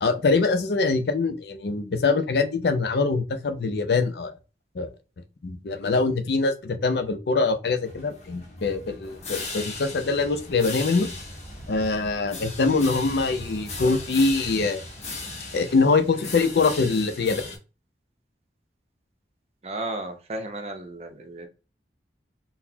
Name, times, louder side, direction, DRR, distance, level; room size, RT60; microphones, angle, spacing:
voice 1, 0.0-4.3 4.8-4.9 5.4-11.1 11.7-14.8 15.5-17.4, left 4 dB, 70° left, 0.5 m, -23 dB
sound 1, 7.8-17.6, left 3 dB, 40° left, 0.8 m, -38 dB
sound 2, 9.0-16.8, right 1 dB, 5° left, 0.8 m, -45 dB
voice 2, 19.6-21.5, right 2 dB, 35° right, 0.6 m, -34 dB
3.9 x 2.0 x 2.7 m
head